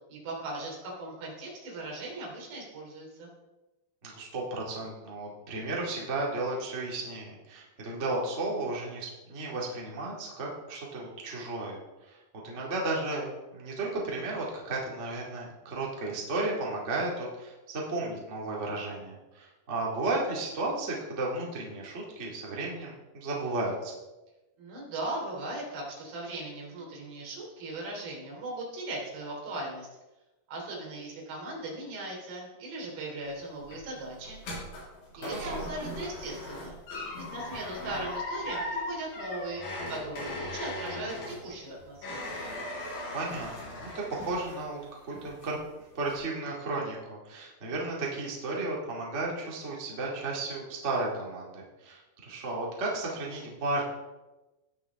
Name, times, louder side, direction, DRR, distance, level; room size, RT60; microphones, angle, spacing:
voice 1, 0.1-3.3 24.6-29.9 30.5-34.4 35.2-36.8 37.1-42.3, right 2 dB, 85° right, -2 dB, 5.3 m, -38 dB
voice 2, 4.0-12.2 12.4-13.2 13.5-23.9 35.2-35.6 43.1-44.8 45.1-45.6 45.9-53.8, right 2 dB, 30° right, -3 dB, 1.4 m, -34 dB
sound 1, 33.3-44.8 45.1-45.7 46.1-46.2, left 1 dB, 85° left, 6.0 m, -38 dB
18.5 x 6.7 x 3.6 m, 1.0 s
omnidirectional pair, 4.8 m